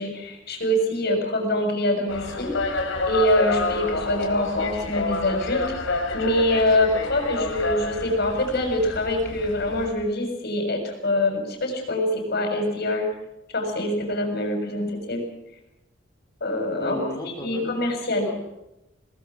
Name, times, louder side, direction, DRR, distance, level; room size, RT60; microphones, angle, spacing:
voice 1, 0.0-13.1 13.5-15.2 16.4-17.1 17.4-18.3, left 1 dB, 55° left, 3 dB, 6.9 m, -25 dB
sound 1, 2.1-9.9, left 3 dB, 80° left, 4.1 m, -29 dB
voice 2, 16.8-17.7 18.2-18.4, equal, 20° left, -2 dB, 4.5 m, -35 dB
27.0 x 19.5 x 6.3 m, 0.92 s
head